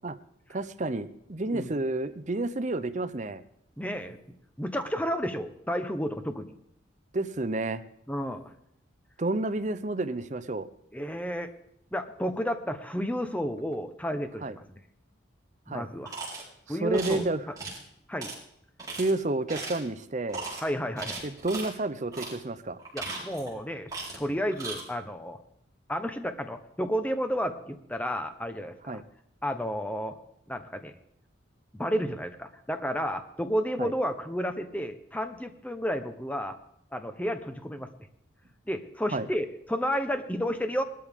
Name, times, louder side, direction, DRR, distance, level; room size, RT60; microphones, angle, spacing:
voice 1, 0.5-3.4 7.1-7.8 9.2-10.7 14.4-14.6 15.7-15.9 16.7-17.4 19.0-20.4 21.2-22.8 28.9-29.0 33.8-33.9 39.1-39.3, right 2 dB, 35° right, 12 dB, 0.7 m, -30 dB
voice 2, 3.8-4.2 4.6-6.5 8.1-8.5 10.9-11.5 11.9-14.8 15.7-16.1 16.7-17.2 18.1-18.3 20.6-21.2 22.9-25.4 25.9-28.7 29.4-30.2 30.5-30.9 31.7-36.6 36.9-37.9 38.7-40.8, equal, 5° left, 7 dB, 0.9 m, -31 dB
sound 1, 16.1-16.4 16.9-17.2 17.6-17.8 18.2-18.3 18.8-19.1 19.5-19.9 20.3-20.6 21.0-21.7 22.1-22.4 22.8-23.5 23.9-24.2 24.5-24.8, right 3 dB, 20° right, 4.5 m, -37 dB
20.0 x 13.0 x 3.7 m, 0.76 s
head